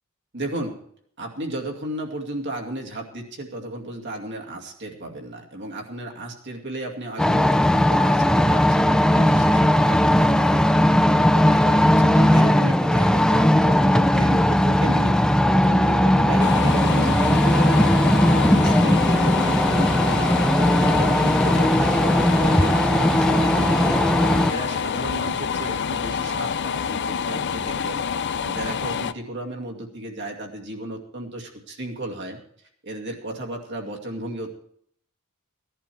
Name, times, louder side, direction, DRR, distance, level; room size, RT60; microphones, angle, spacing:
voice 1, 0.3-0.8 1.2-10.7 11.2-15.2 15.5-28.0 28.4-32.4 32.8-34.6, right 1 dB, 55° right, 1 dB, 2.3 m, -34 dB
sound 1, 7.2-24.5, left 1 dB, 5° left, 0.4 m, -18 dB
sound 2, 16.4-29.1, left 6 dB, 55° left, 0.5 m, -27 dB
16.0 x 11.5 x 4.6 m, 0.64 s
head